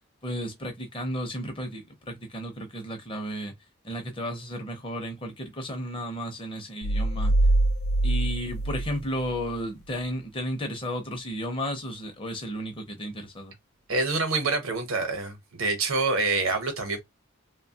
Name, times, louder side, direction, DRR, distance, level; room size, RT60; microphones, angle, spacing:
voice 1, 0.2-3.5 3.8-7.3 8.0-13.5, equal, 25° left, 0.7 m, -33 dB
sound 1, 6.8-9.6, right 2 dB, 75° left, 0.4 m, -24 dB
voice 2, 13.9-17.0, right 3 dB, 75° right, 0.9 m, -26 dB
2.8 x 2.2 x 2.8 m
head